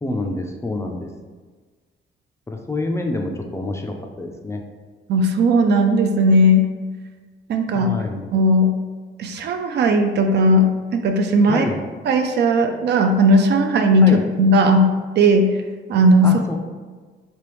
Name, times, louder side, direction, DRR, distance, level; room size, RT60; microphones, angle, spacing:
voice 1, 0.0-1.1 2.5-4.6 7.7-8.2 11.5-11.8 14.0-14.2 16.2-16.5, left 2 dB, 15° left, 2 dB, 0.4 m, -27 dB
voice 2, 5.1-6.7 7.5-7.9 8.3-8.7 9.2-11.7 12.1-14.9 15.2-15.5 15.9-16.5, equal, 60° right, 5 dB, 0.4 m, -16 dB
3.3 x 3.0 x 3.1 m, 1.4 s
cardioid pair, 90°, 20 cm